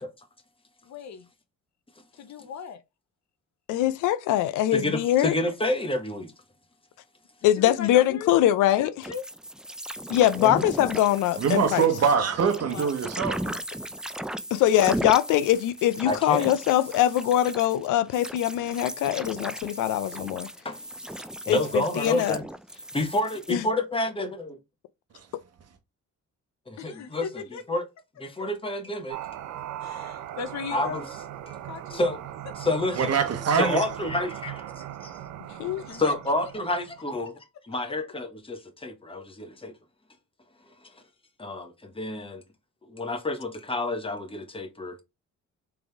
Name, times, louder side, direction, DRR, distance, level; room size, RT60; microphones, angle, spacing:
voice 1, 0.8-1.3 2.1-2.8 7.6-8.3 8.7-9.2 12.6-13.0 21.6-22.1 26.8-27.6 28.4-28.5 29.8-31.0 31.7-32.0 35.8-36.1, left 6 dB, 65° left, 0.8 m, -38 dB
voice 2, 3.7-5.4 7.4-9.1 10.1-11.9 14.5-20.5 21.5-22.4 23.5-23.6 35.6-35.8, left 12 dB, 85° left, 0.5 m, -23 dB
voice 3, 4.7-6.3 10.4-10.6 16.0-16.5 20.6-20.8 21.4-22.4 22.9-24.6 26.7-27.8 28.2-29.2 30.7-31.1 31.5-31.6 31.9-32.2 32.5-33.2 33.5-35.1 35.9-37.4 37.6-39.7 41.4-42.4 42.9-45.0, left 2 dB, 20° left, 1.2 m, -29 dB
sound 1, 9.0-23.5, right 1 dB, 5° right, 0.3 m, -37 dB
voice 4, 11.4-13.6 33.0-33.8, right 6 dB, 55° right, 1.0 m, -24 dB
sound 2, 29.1-37.1, right 12 dB, 75° right, 0.6 m, -39 dB
3.8 x 3.4 x 3.4 m
cardioid pair, 90°, 30 cm